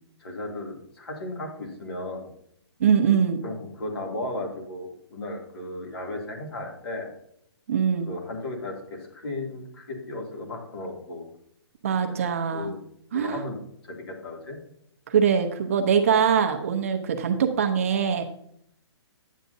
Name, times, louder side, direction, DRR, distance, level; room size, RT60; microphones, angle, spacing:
voice 1, 0.2-2.3 3.4-7.1 8.1-11.2 12.1-12.2 12.5-12.8 13.1-13.6 13.9-14.6 16.0-16.2, left 2 dB, 60° left, 1 dB, 2.5 m, -35 dB
voice 2, 2.8-3.4 7.7-8.1 11.8-12.7 13.1-13.4 15.1-18.2, right 7 dB, 30° right, 5 dB, 0.6 m, -23 dB
10.0 x 8.2 x 2.7 m, 0.71 s
hypercardioid pair, 170°, 14 cm